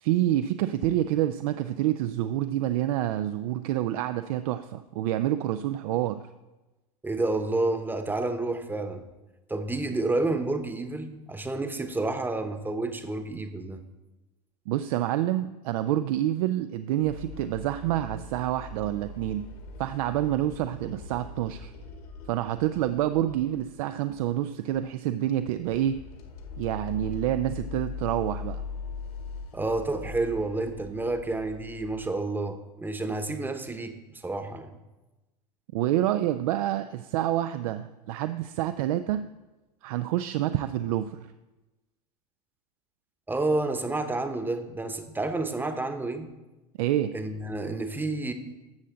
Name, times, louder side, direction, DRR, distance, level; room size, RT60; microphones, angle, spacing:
voice 1, 0.0-6.2 14.7-19.4 19.8-21.7 22.3-26.0 26.6-28.6 35.7-39.2 39.8-41.2 46.8-47.1, right 13 dB, 60° right, 11 dB, 0.5 m, -27 dB
voice 2, 7.0-9.0 9.5-13.8 29.5-34.7 43.3-46.3 47.1-48.3, right 2 dB, 10° right, 8 dB, 1.0 m, -30 dB
sound 1, 17.0-23.8 24.1-24.4 24.7-24.9 25.3-32.1, left 4 dB, 65° left, 1.9 m, -41 dB
13.5 x 7.4 x 3.8 m, 1.1 s
hypercardioid pair, 90°, 21 cm